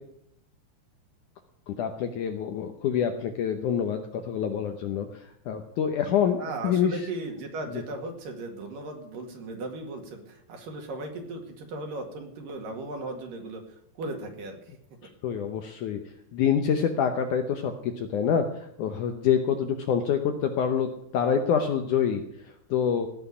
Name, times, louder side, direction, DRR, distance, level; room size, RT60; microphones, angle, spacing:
voice 1, 1.7-7.1 7.7-7.8 15.2-16.0 16.3-23.1, left 7 dB, 80° left, 6 dB, 1.8 m, -26 dB
voice 2, 6.4-13.6 14.0-14.6, right 2 dB, 60° right, 3 dB, 3.4 m, -36 dB
17.5 x 6.1 x 9.7 m, 0.74 s
omnidirectional pair, 4.9 m